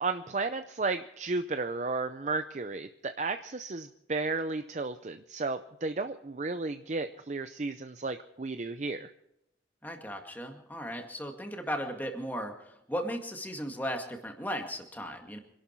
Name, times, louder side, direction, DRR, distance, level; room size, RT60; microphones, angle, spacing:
voice 1, 0.0-9.1, right 3 dB, 40° right, 9 dB, 0.5 m, -33 dB
voice 2, 9.8-15.4, equal, 10° left, 3 dB, 2.0 m, -36 dB
26.0 x 11.5 x 4.6 m, 0.81 s
head